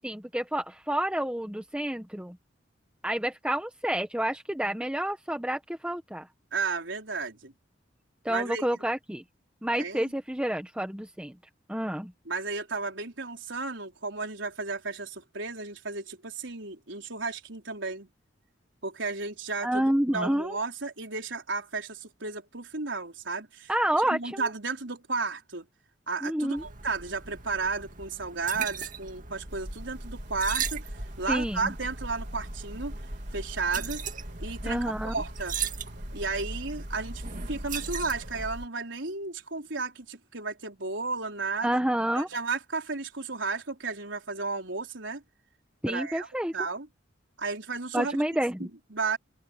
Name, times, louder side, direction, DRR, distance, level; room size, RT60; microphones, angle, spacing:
voice 1, 0.0-2.4 3.0-6.3 8.2-9.2 9.6-11.4 11.7-12.1 19.6-20.6 23.7-24.5 26.2-26.6 31.3-31.7 34.6-35.1 41.6-42.3 45.8-46.5 47.9-48.7, right 1 dB, 5° right, 1.1 m, -29 dB
voice 2, 6.5-7.5 8.3-8.7 9.8-10.1 12.3-18.1 18.8-23.7 24.1-25.7 26.1-30.9 31.2-33.0 33.3-34.0 34.4-35.5 36.1-41.8 42.1-45.2 45.9-46.3 46.5-46.9 47.4-48.2 48.6-49.2, right 4 dB, 90° right, 4.1 m, -33 dB
sound 1, 26.6-38.5, right 7 dB, 45° right, 2.1 m, -39 dB
sound 2, 29.5-38.7, equal, 70° right, 7.7 m, -40 dB
open air
head